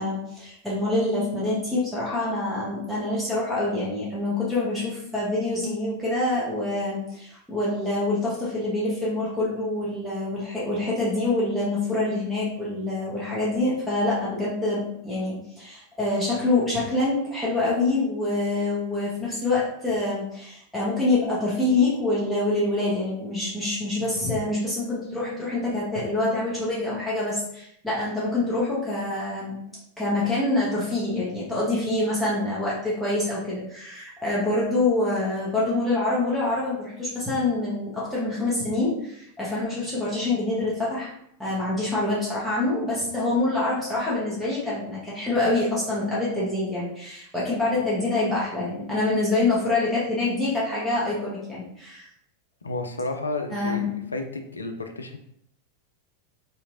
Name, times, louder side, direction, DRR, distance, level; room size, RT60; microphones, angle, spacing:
voice 1, 0.0-29.6 30.0-41.1 41.4-52.0 53.5-53.9, left 2 dB, ahead, -9 dB, 1.1 m, -26 dB
voice 2, 52.6-55.2, left 2 dB, 75° left, 5 dB, 0.4 m, -32 dB
2.9 x 2.4 x 2.7 m, 0.71 s
figure-of-eight pair, 90°, 0 cm